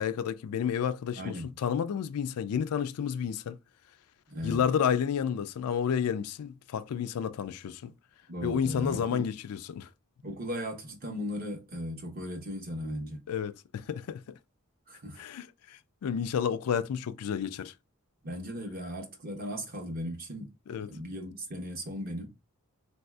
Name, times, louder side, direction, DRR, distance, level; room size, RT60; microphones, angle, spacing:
voice 1, 0.0-3.6 4.4-7.9 8.4-9.9 13.3-14.2 15.2-17.7 20.7-20.9, left 8 dB, 85° left, 0.3 m, -31 dB
voice 2, 1.2-1.5 4.3-4.7 8.3-9.3 10.2-13.2 14.9-15.2 18.2-20.5 20.9-22.3, equal, 40° right, 0.9 m, -37 dB
3.9 x 2.6 x 2.2 m
head